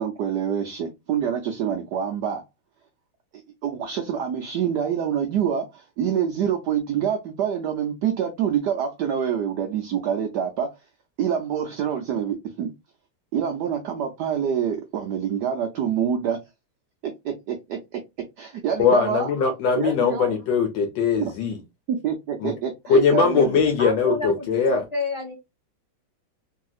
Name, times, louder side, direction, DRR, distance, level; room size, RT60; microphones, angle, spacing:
voice 1, 0.0-2.4 3.3-10.7 11.2-12.7 13.3-16.4 17.0-18.0 18.4-19.3 19.8-20.3 21.2-21.3 21.9-23.5, right 8 dB, 80° right, 0.9 m, -26 dB
voice 2, 18.8-21.6 22.4-22.5 22.9-24.8, left 5 dB, 70° left, 1.1 m, -21 dB
voice 3, 23.8-25.3, left 3 dB, 15° left, 1.1 m, -30 dB
3.2 x 2.7 x 2.3 m
omnidirectional pair, 2.4 m